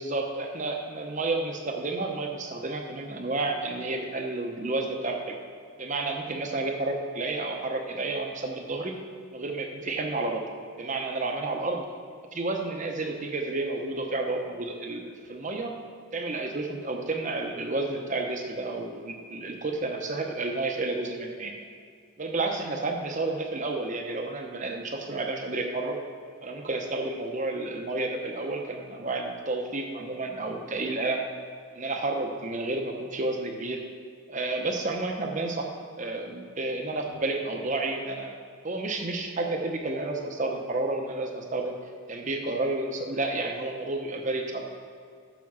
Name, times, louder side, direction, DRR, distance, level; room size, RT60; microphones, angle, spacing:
voice 1, 0.0-5.4 5.8-8.9 9.3-10.4 10.8-11.8 12.3-15.7 16.1-21.5 22.2-26.0 26.4-31.2 31.8-33.8 34.3-35.7 36.0-38.3 38.6-41.8 42.1-44.6, right 2 dB, 35° right, 2 dB, 0.8 m, -31 dB
7.2 x 6.8 x 6.1 m, 2.2 s
head